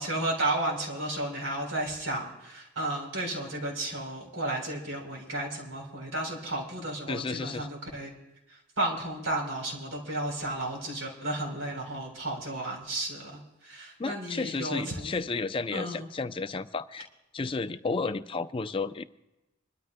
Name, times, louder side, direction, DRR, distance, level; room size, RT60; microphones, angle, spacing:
voice 1, 0.0-8.1 8.5-15.1 15.7-16.1, right 1 dB, 85° right, 1 dB, 3.9 m, -33 dB
voice 2, 7.1-7.7 14.0-17.1 17.3-19.0, left 4 dB, 25° left, 11 dB, 0.4 m, -32 dB
26.0 x 13.0 x 2.2 m, 0.99 s
head